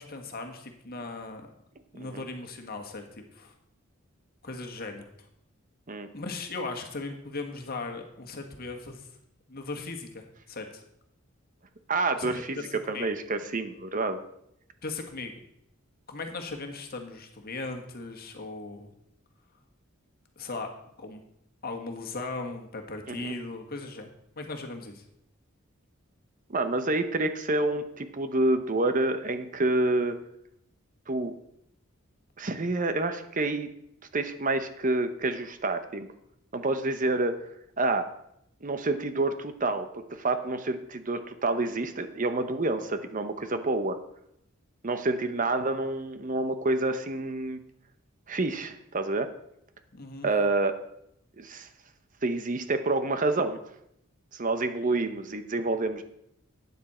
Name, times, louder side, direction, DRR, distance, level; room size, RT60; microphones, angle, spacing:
voice 1, 0.0-1.5 1.9-3.5 4.4-5.1 6.1-9.1 9.5-10.8 12.2-13.2 14.8-15.4 16.1-18.9 20.4-20.7 21.0-21.2 21.6-24.1 24.4-25.0 49.9-50.3, left 3 dB, 45° left, 4 dB, 1.7 m, -38 dB
voice 2, 11.9-12.6 12.9-14.2 23.1-23.3 26.5-30.2 31.1-31.4 32.4-33.7 34.1-36.1 36.5-37.4 37.8-38.0 38.6-44.0 44.8-47.6 48.3-49.3 50.2-50.8 51.4-51.7 52.2-53.6 54.3-56.0, right 2 dB, 40° right, 9 dB, 0.8 m, -28 dB
13.0 x 9.5 x 4.3 m, 0.76 s
head